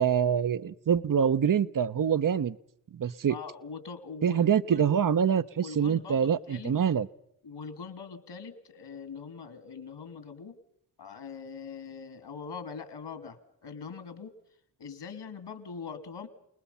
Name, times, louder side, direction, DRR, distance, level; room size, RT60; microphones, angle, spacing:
voice 1, 0.0-2.5 2.9-3.4 4.2-7.1, right 8 dB, 45° right, 14 dB, 0.8 m, -25 dB
voice 2, 3.0-4.9 5.6-6.7 7.4-10.6 11.0-14.3 14.8-16.3, left 5 dB, 70° left, 11 dB, 2.7 m, -42 dB
28.5 x 20.0 x 5.6 m, 0.71 s
cardioid pair, 45°, 44 cm